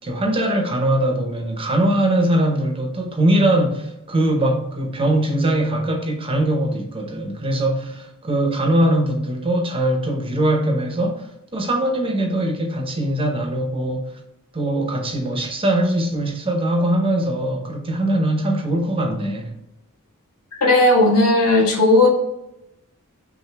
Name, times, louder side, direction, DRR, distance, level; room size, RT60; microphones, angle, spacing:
voice 1, 0.0-11.3 11.5-14.1 14.5-19.5, right 1 dB, 25° right, 0.8 m, -21 dB
voice 2, 20.6-22.1, left 2 dB, 85° left, 1.6 m, -15 dB
5.8 x 2.6 x 3.3 m
head